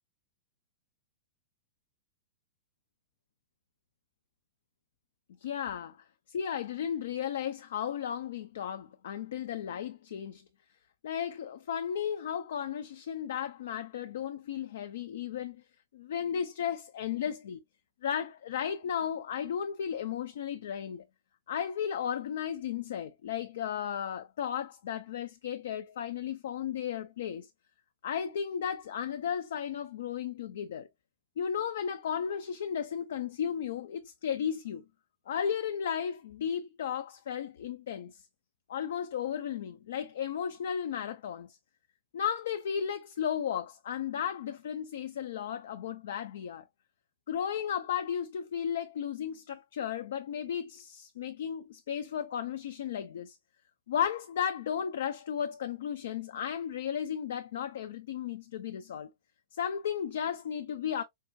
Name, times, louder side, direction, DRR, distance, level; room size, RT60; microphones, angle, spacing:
voice 1, 5.4-10.4 11.0-15.6 15.9-17.6 18.0-21.1 21.5-27.5 28.0-30.9 31.4-34.8 35.3-38.2 38.7-41.6 42.1-46.6 47.3-53.4 53.9-59.1 59.5-61.0, left 8 dB, 65° left, 0.4 m, -34 dB
4.6 x 2.1 x 2.6 m
figure-of-eight pair, 105°, 0 cm